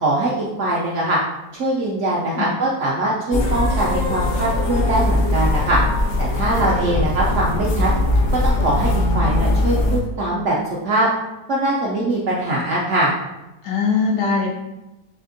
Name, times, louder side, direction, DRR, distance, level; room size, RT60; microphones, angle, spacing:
voice 1, 0.0-1.2 1.6-5.8 6.2-7.9 8.4-8.9 9.1-10.6 10.8-11.1 11.5-13.1, right 1 dB, 65° right, -4 dB, 0.7 m, -22 dB
sound 1, 3.3-10.0, left 1 dB, 70° left, 0.7 m, -20 dB
voice 2, 13.6-14.5, left 4 dB, 85° left, -2 dB, 1.6 m, -22 dB
4.1 x 3.4 x 2.6 m, 0.98 s
omnidirectional pair, 1.8 m